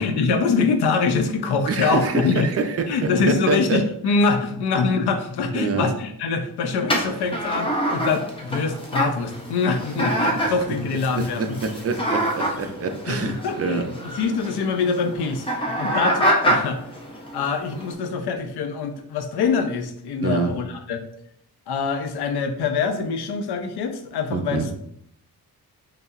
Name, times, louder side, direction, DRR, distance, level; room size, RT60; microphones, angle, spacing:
voice 1, 0.0-2.5 2.9-11.6 13.1-16.8 17.3-21.0 21.7-24.7, left 4 dB, 85° left, 6 dB, 0.6 m, -24 dB
voice 2, 1.7-3.1 3.5-3.8 5.5-5.9 10.4-10.5 11.2-14.2 20.2-20.5 24.3-24.7, right 4 dB, 40° right, 6 dB, 0.4 m, -26 dB
sound 1, 6.9-17.9, equal, 15° left, 0.7 m, -26 dB
5.4 x 2.0 x 2.4 m, 0.72 s
cardioid pair, 115°, 38 cm